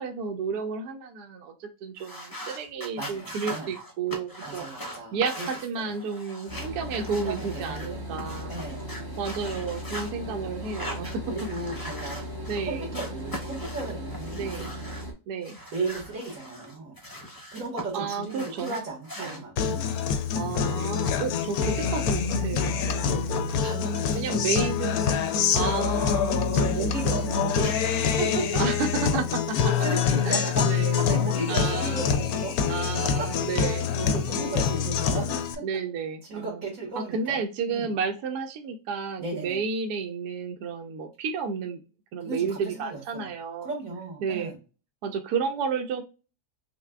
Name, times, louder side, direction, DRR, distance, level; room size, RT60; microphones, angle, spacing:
voice 1, 0.0-4.7 5.1-8.6 9.2-11.3 12.5-13.0 14.3-14.7 15.3-15.6 17.9-18.7 19.2-19.4 20.3-23.7 24.1-25.2 25.5-26.9 28.6-29.7 30.3-31.0 31.5-32.1 32.7-33.9 34.3-34.9 35.6-36.6 37.0-41.8 42.1-43.7 44.2-44.5 45.0-46.0, right 5 dB, 75° right, 4 dB, 1.1 m, -32 dB
sound 1, 2.0-7.9 8.2-10.1 10.6-12.6 12.9-15.1 15.4-17.8 18.1-19.4, equal, 20° left, 0.6 m, -40 dB
voice 2, 3.0-3.7 4.4-5.5 5.8-5.9 7.1-8.8 9.4-9.5 11.3-12.2 12.7-14.5 15.7-17.0 17.5-19.9 23.6-24.6 26.5-28.6 29.8-32.8 33.2-33.3 33.7-35.8 36.3-37.4 37.7-38.0 39.2-39.6 42.2-43.3 43.6-44.6, right 3 dB, 55° right, -3 dB, 1.8 m, -35 dB
sound 2, 6.5-15.1, equal, 25° right, 0.5 m, -37 dB
Guitar, 19.6-35.5, left 7 dB, 70° left, 1.0 m, -26 dB
5.5 x 2.1 x 2.2 m, 0.32 s
omnidirectional pair, 1.7 m